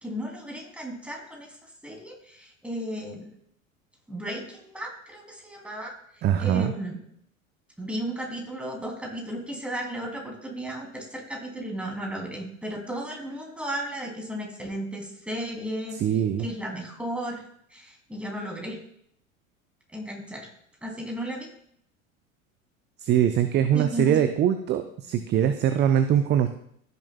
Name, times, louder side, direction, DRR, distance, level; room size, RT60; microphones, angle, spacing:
voice 1, 0.0-1.6 1.8-3.3 4.1-5.9 6.4-7.0 7.8-16.0 16.4-17.4 17.7-18.8 19.9-20.5 20.8-21.5 23.7-24.2, right 1 dB, 5° right, 0 dB, 2.7 m, -34 dB
voice 2, 6.2-6.7 16.0-16.5 23.0-26.5, right 10 dB, 25° right, 9 dB, 0.5 m, -22 dB
15.0 x 6.7 x 2.2 m, 0.69 s
figure-of-eight pair, 75°, 41 cm